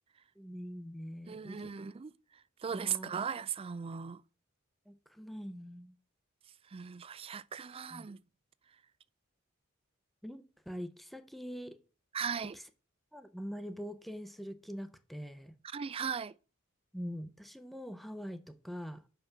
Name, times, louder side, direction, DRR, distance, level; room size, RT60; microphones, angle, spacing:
voice 1, 0.4-1.7 2.7-3.1 4.9-6.0 7.9-8.1 10.2-11.8 13.1-15.5 16.9-19.0, equal, ahead, 0.7 m, -43 dB
voice 2, 1.3-4.2 6.7-8.2 12.1-12.6 15.6-16.3, right 7 dB, 25° right, 0.3 m, -38 dB
6.0 x 5.7 x 6.8 m
head